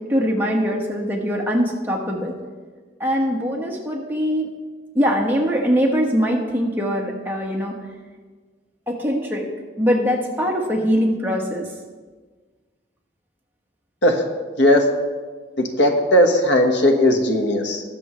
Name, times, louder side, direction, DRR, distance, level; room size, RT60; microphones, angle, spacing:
voice 1, 0.1-2.3 3.0-4.5 4.9-7.7 8.9-9.5 9.8-11.7, equal, 10° right, -2 dB, 1.4 m, -22 dB
voice 2, 15.8-17.8, left 1 dB, 80° left, 4 dB, 1.3 m, -17 dB
21.0 x 7.1 x 3.1 m, 1.4 s
head